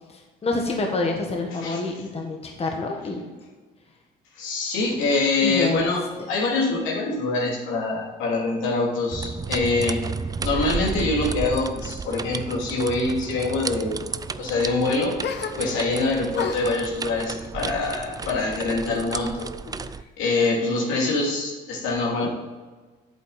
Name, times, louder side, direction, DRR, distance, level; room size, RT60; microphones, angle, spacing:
voice 1, 0.1-3.2 5.4-5.9 6.2-6.3, left 3 dB, 30° left, 1 dB, 1.5 m, -27 dB
voice 2, 1.6-1.9 4.3-10.0 10.4-14.1 14.4-19.5 20.2-22.3, left 3 dB, 80° left, -2 dB, 2.7 m, -25 dB
sound 1, 9.1-20.0, right 5 dB, 20° right, 0.4 m, -33 dB
sound 2, 15.2-16.0 16.3-19.1 19.4-20.2, left 6 dB, 60° left, 1.0 m, -36 dB
8.3 x 8.1 x 4.1 m, 1.3 s
supercardioid pair, 80°, 20 cm